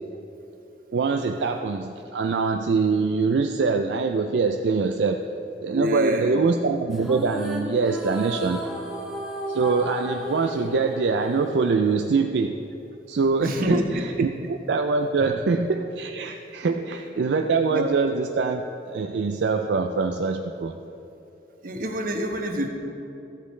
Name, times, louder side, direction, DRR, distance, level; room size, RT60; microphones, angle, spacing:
voice 1, 0.9-5.2 5.6-8.7 9.5-12.5 13.1-20.7, right 4 dB, 75° right, 5 dB, 0.4 m, -24 dB
voice 2, 5.7-6.4 13.4-13.8 14.2-14.3 16.6-16.8 17.2-17.3 17.7-17.9 21.6-22.7, equal, 50° right, 3 dB, 1.0 m, -27 dB
sound 1, 6.9-12.4, equal, 5° right, 1.1 m, -34 dB
13.5 x 8.2 x 3.2 m, 2.9 s
head